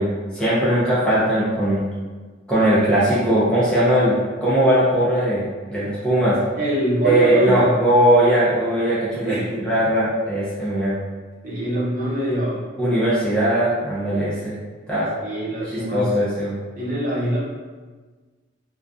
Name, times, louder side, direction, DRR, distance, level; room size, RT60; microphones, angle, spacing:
voice 1, 0.0-1.8 2.5-6.4 7.0-11.0 12.8-14.5 14.9-15.1 15.6-16.6, right 1 dB, 5° left, -11 dB, 0.5 m, -19 dB
voice 2, 6.6-7.7 9.2-9.7 11.4-12.6 15.2-16.1 16.8-17.4, right 1 dB, 40° right, -8 dB, 0.8 m, -23 dB
2.5 x 2.3 x 2.4 m, 1.4 s
head